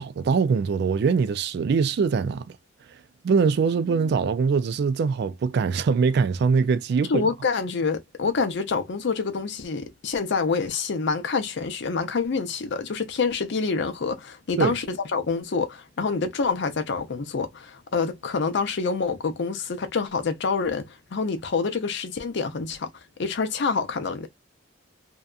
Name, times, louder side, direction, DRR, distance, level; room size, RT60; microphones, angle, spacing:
voice 1, 0.0-2.5 3.2-7.3 14.6-14.7, right 5 dB, 55° right, 0.3 m, -22 dB
voice 2, 7.1-22.9 23.2-24.3, left 4 dB, 65° left, 0.6 m, -27 dB
2.7 x 2.2 x 2.3 m
head